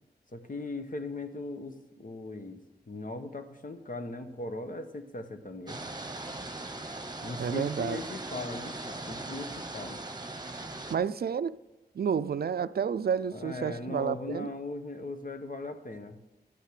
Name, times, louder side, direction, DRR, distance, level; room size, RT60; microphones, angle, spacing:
voice 1, 0.3-5.8 7.2-10.0 13.3-16.2, left 2 dB, 55° left, 1.1 m, -39 dB
sound 1, 5.7-11.0, right 2 dB, 25° right, 1.2 m, -39 dB
voice 2, 7.4-8.0 10.9-11.6 11.9-14.5, right 7 dB, 65° right, 0.4 m, -30 dB
12.0 x 6.5 x 6.5 m
wide cardioid pair, 65°, 17 cm